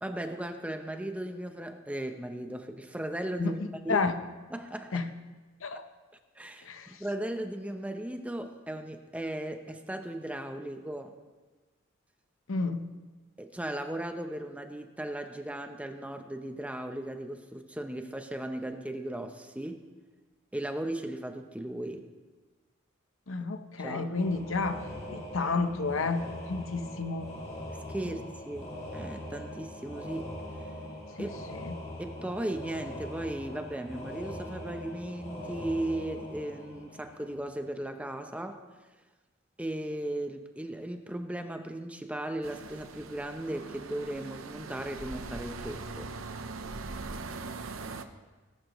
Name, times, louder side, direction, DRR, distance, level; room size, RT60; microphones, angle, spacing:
voice 1, 0.0-3.6 3.8-4.1 4.5-5.0 6.4-11.1 13.4-19.9 20.5-22.1 23.8-24.1 27.9-30.4 31.2-31.4 32.0-38.6 39.6-46.1, right 1 dB, 5° right, 6 dB, 0.7 m, -36 dB
voice 2, 3.4-4.1 4.9-5.1 5.6-5.9 6.6-7.0 12.5-12.9 23.3-24.8 25.1-27.3 28.0-28.2 31.2-31.7, left 4 dB, 70° left, 9 dB, 0.8 m, -31 dB
sound 1, 24.1-37.6, left 1 dB, 35° left, 3.3 m, -42 dB
sound 2, 42.4-48.0, right 3 dB, 75° right, 0.8 m, -41 dB
19.0 x 11.0 x 3.1 m, 1.3 s
head